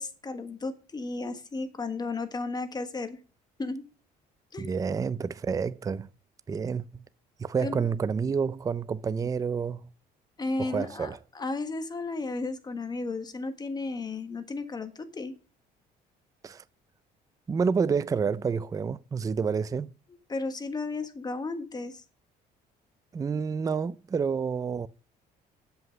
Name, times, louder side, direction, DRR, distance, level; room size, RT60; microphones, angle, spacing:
voice 1, 0.0-3.2 3.6-3.8 4.5-4.8 7.6-7.9 10.4-15.3 20.3-22.0, left 3 dB, 25° left, 1.5 m, -34 dB
voice 2, 4.6-6.1 6.5-7.0 7.4-9.9 10.6-11.2 16.4-16.6 17.5-19.9 23.1-24.9, right 6 dB, 20° right, 0.4 m, -29 dB
8.0 x 7.9 x 5.3 m
cardioid pair, 110°, 17 cm